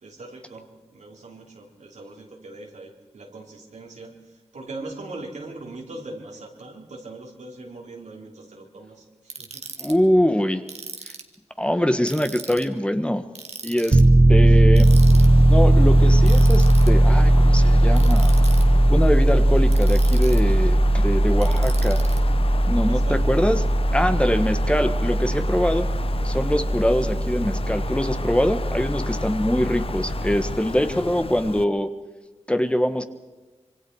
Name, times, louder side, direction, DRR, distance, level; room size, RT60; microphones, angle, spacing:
voice 1, 0.0-9.6 22.7-23.2, right 2 dB, 85° right, 0 dB, 3.7 m, -40 dB
Ratchet pawl, 9.3-9.9 10.7-11.4 12.1-12.7 13.4-14.1 14.8-15.3 16.3-16.9 17.9-18.6 19.7-20.5 21.4-22.2, right 4 dB, 65° right, 1.9 m, -38 dB
voice 2, 9.8-10.6 11.6-13.2 13.6-14.0 14.3-14.9 15.5-18.3 18.9-22.0 22.7-23.6 23.9-25.9 26.2-31.9 32.5-33.0, equal, 10° left, 9 dB, 1.4 m, -23 dB
Piano, 13.9-30.6, right 1 dB, 30° right, 1.0 m, -18 dB
Wind, 14.9-31.6, left 4 dB, 55° left, 0.7 m, -33 dB
26.0 x 23.5 x 4.8 m, 1.2 s
cardioid pair, 60°, 12 cm